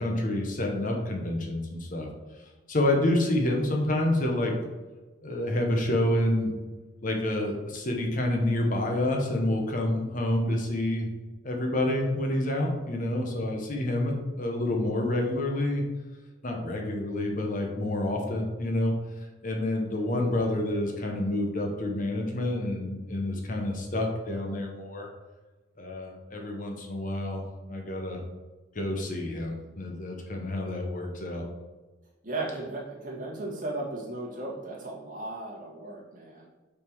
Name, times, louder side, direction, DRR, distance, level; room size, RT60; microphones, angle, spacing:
voice 1, 0.0-2.1 2.7-4.6 5.2-6.5 7.0-11.1 11.4-15.8 16.4-18.9 19.4-25.1 25.8-27.4 27.7-28.2 28.7-31.5, left 1 dB, 45° left, 2 dB, 1.0 m, -28 dB
voice 2, 32.2-36.5, right 2 dB, 50° right, -4 dB, 1.9 m, -36 dB
5.9 x 4.3 x 4.6 m, 1.2 s
head